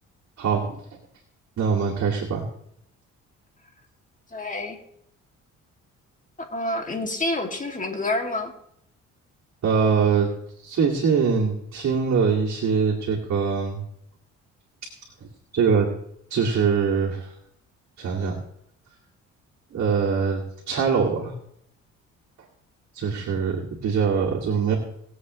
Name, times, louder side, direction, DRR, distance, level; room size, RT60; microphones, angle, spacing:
voice 1, 0.4-0.8 1.6-2.4 9.6-10.3 10.6-13.8 15.5-15.9 16.3-17.3 18.0-18.4 19.7-21.3 22.9-24.8, right 6 dB, 60° right, -3 dB, 2.5 m, -23 dB
voice 2, 4.3-4.8 6.5-8.5, left 2 dB, 25° left, 3 dB, 2.4 m, -28 dB
20.0 x 8.1 x 3.2 m, 0.73 s
cardioid pair, 90°, 30 cm